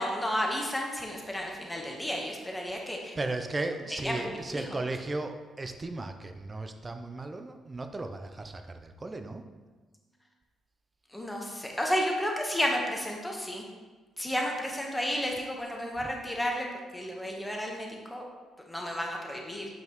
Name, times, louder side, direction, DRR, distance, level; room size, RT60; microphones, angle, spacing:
voice 1, 0.0-3.2 4.0-4.6 11.1-13.6 14.2-16.7 16.9-18.3 18.7-19.6, equal, 10° left, 0 dB, 1.2 m, -32 dB
voice 2, 3.2-9.4 16.0-16.1, right 2 dB, 25° right, 7 dB, 0.6 m, -35 dB
7.7 x 5.4 x 3.1 m, 1.3 s
cardioid pair, 90°, 0 cm